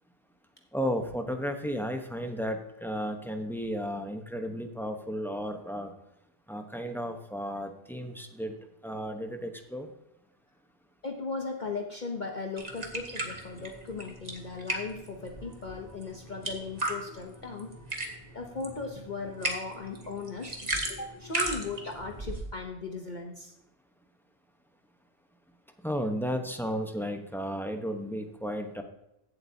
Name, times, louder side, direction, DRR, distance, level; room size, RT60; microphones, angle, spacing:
voice 1, 0.7-5.9 6.5-8.6 8.8-9.9 25.8-28.8, equal, ahead, 5 dB, 0.9 m, -33 dB
voice 2, 11.0-17.7 18.3-20.6 20.9-23.5, left 4 dB, 45° left, 2 dB, 1.0 m, -37 dB
sound 1, 12.6-22.4, right 2 dB, 35° right, 1.6 m, -37 dB
16.0 x 7.8 x 2.8 m, 0.86 s
omnidirectional pair, 1.2 m